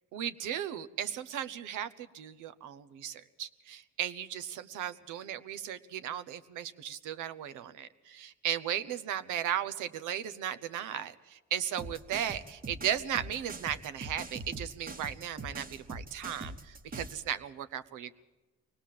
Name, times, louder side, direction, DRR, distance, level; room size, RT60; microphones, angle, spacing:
voice 1, 0.1-18.1, right 10 dB, 85° right, 13 dB, 0.9 m, -36 dB
sound 1, 11.8-17.2, right 2 dB, 30° right, 1.4 m, -43 dB
23.5 x 18.5 x 7.6 m, 1.2 s
cardioid pair, 90°, 30 cm